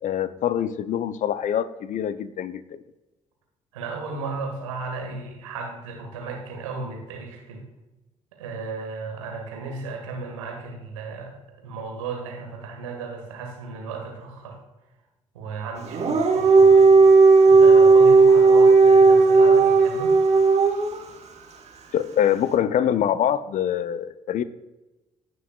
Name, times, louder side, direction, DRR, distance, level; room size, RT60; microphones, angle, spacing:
voice 1, 0.0-2.6 21.9-24.4, left 10 dB, 50° left, 15 dB, 0.6 m, -24 dB
voice 2, 3.7-7.7 8.4-14.6 15.3-16.9 17.4-20.2, right 4 dB, 80° right, 2 dB, 1.6 m, -35 dB
Dog, 15.8-21.0, right 4 dB, 40° right, 1.5 m, -14 dB
16.0 x 6.2 x 2.4 m, 1.1 s
figure-of-eight pair, 45°, 16 cm